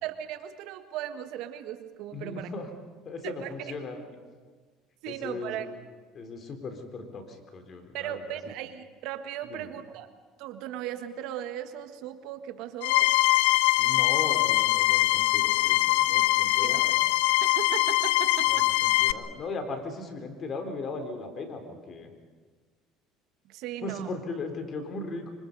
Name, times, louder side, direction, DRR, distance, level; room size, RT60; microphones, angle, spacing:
voice 1, 0.0-2.5 3.2-3.7 5.0-5.7 7.9-10.1 10.4-13.1 16.6-16.8 17.4-18.6 23.5-24.2, right 11 dB, 70° right, 9 dB, 1.5 m, -37 dB
voice 2, 2.1-2.7 3.0-4.0 5.1-5.6 6.1-8.4 9.4-9.7 13.8-17.0 18.5-22.1 23.8-25.3, left 3 dB, 45° left, 6 dB, 4.0 m, -38 dB
sound 1, 12.8-19.1, left 18 dB, 90° left, 0.6 m, -23 dB
25.5 x 25.0 x 5.4 m, 1.5 s
supercardioid pair, 90°, 0 cm